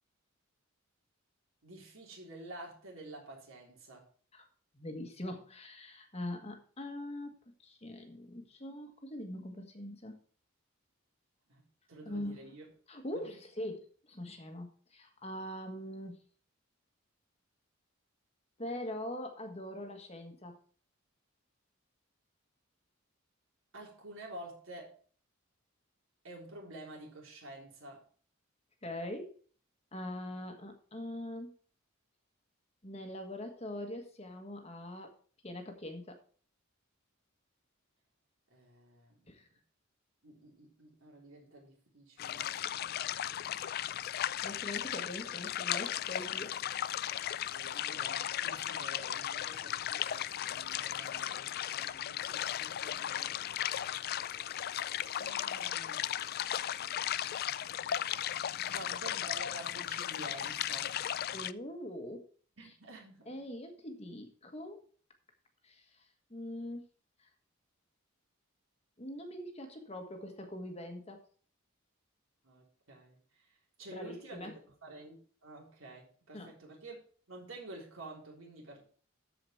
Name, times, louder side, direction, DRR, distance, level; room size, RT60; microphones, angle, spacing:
voice 1, 1.6-4.1 11.5-11.6 11.9-12.7 13.2-13.4 23.7-25.0 26.2-28.1 38.5-39.2 40.2-42.5 47.5-53.4 55.2-56.4 58.7-60.9 62.6-63.4 72.4-74.5 74.8-77.0 77.3-78.8, right 1 dB, 70° right, -1 dB, 3.7 m, -49 dB
voice 2, 4.7-7.3 7.6-10.2 12.0-12.5 12.9-16.2 18.6-20.6 28.8-29.3 29.9-31.5 32.8-35.1 35.4-36.2 39.3-39.5 44.4-46.6 58.6-58.9 61.3-62.3 63.3-64.8 65.6-66.9 67.2-67.3 69.0-71.2 73.9-74.5 76.3-76.5, left 1 dB, 30° left, 4 dB, 1.5 m, -43 dB
sound 1, 42.2-61.5, left 11 dB, 45° left, 0.3 m, -36 dB
13.5 x 5.0 x 4.5 m, 0.44 s
head